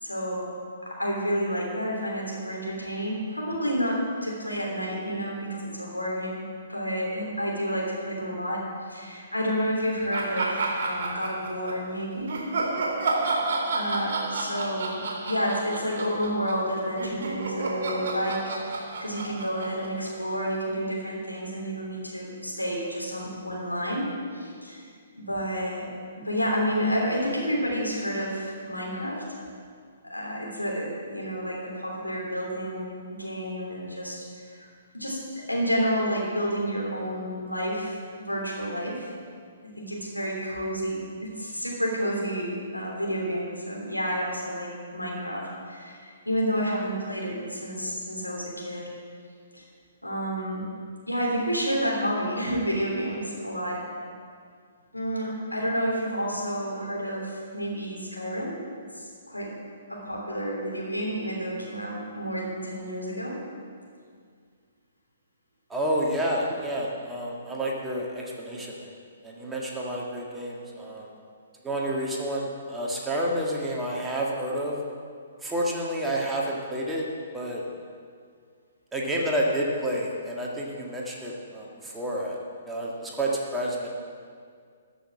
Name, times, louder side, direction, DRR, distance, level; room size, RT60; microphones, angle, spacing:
voice 1, 0.0-0.5 0.8-12.3 13.7-24.0 24.3-24.9 25.1-25.9 26.2-29.2 30.0-34.7 34.9-39.1 39.6-48.9 49.5-49.6 50.0-50.6 51.1-53.8 54.9-58.6 58.9-59.6 59.9-63.4, equal, 90° left, -3 dB, 3.3 m, -30 dB
sound 1, 10.1-11.8 12.3-20.5, right 3 dB, 50° right, 2.2 m, -31 dB
voice 2, 65.7-68.9 69.2-71.1 71.6-74.8 75.4-77.1 77.3-77.6 78.9-82.4 82.7-83.9, right 1 dB, 10° right, -3 dB, 1.7 m, -29 dB
13.5 x 6.4 x 7.4 m, 2.1 s
figure-of-eight pair, 125°, 0 cm